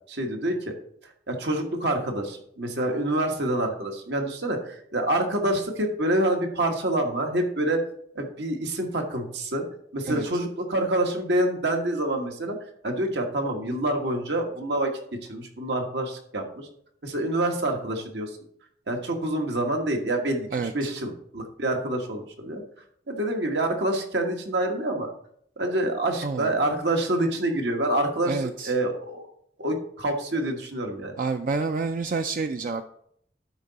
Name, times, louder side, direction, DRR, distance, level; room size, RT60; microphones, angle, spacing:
voice 1, 0.1-0.7 1.3-7.8 8.1-9.6 9.9-12.6 12.8-14.9 15.3-16.7 17.0-18.3 18.9-22.6 23.1-25.1 25.6-29.3 29.6-31.1, right 1 dB, 80° right, 3 dB, 1.4 m, -27 dB
voice 2, 28.3-28.7 31.2-32.8, right 4 dB, 50° right, 7 dB, 0.4 m, -28 dB
12.0 x 4.7 x 4.0 m, 0.67 s
head